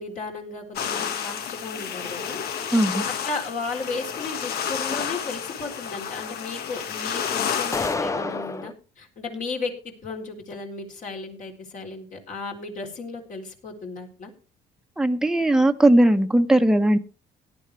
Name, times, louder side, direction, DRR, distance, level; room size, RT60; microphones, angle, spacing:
voice 1, 0.0-2.4 3.1-14.3, left 3 dB, 50° left, 2 dB, 3.8 m, -35 dB
sound 1, 0.8-8.0, left 7 dB, 70° left, 1.6 m, -30 dB
voice 2, 2.7-3.0 15.0-17.0, right 1 dB, 5° right, 6 dB, 1.1 m, -18 dB
sound 2, 7.7-8.7, left 3 dB, 20° left, 0.6 m, -28 dB
17.5 x 11.0 x 3.4 m, 0.34 s
cardioid pair, 110°, 17 cm